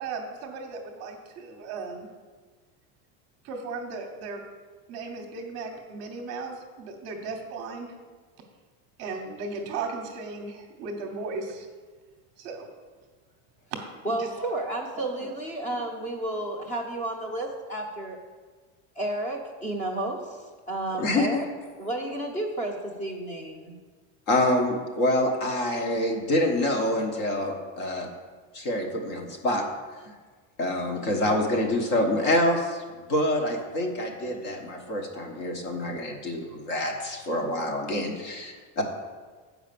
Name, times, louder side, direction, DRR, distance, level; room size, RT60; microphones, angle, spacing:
voice 1, 0.0-2.1 3.4-4.4 4.9-7.9 9.0-11.7 12.4-12.7 13.7-13.8 14.1-14.3 14.9-15.4 15.6-15.8, right 4 dB, 40° right, 4 dB, 0.9 m, -36 dB
voice 2, 14.0-18.2 19.0-20.2 20.7-21.5 21.8-23.7, right 1 dB, 20° left, 2 dB, 0.9 m, -31 dB
voice 3, 21.0-21.4 24.3-28.1 28.5-29.6 30.6-32.8 33.1-38.8, left 1 dB, 50° left, 2 dB, 1.3 m, -26 dB
7.8 x 4.9 x 6.8 m, 1.5 s
cardioid pair, 180°, 40 cm